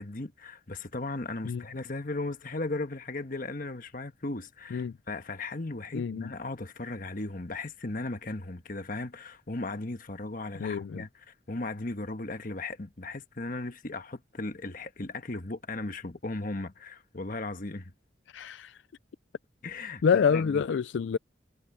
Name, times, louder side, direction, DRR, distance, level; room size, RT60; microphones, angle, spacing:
voice 1, 0.0-17.9 19.6-20.6, left 2 dB, 45° left, 1.3 m, -37 dB
voice 2, 5.9-6.3 10.6-11.0 18.3-18.8 20.0-21.2, left 6 dB, 75° left, 0.4 m, -27 dB
head